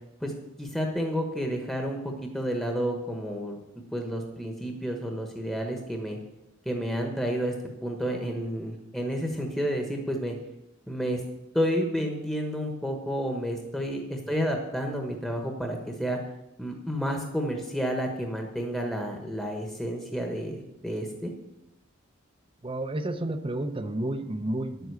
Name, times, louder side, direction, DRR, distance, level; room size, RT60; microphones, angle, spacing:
voice 1, 0.6-6.2 6.6-7.5 7.8-10.3 10.9-11.2 11.5-16.2 16.6-21.3, equal, 5° left, 2 dB, 1.2 m, -30 dB
voice 2, 22.6-24.9, right 1 dB, 25° right, 9 dB, 0.7 m, -31 dB
10.0 x 8.0 x 6.9 m, 0.91 s
head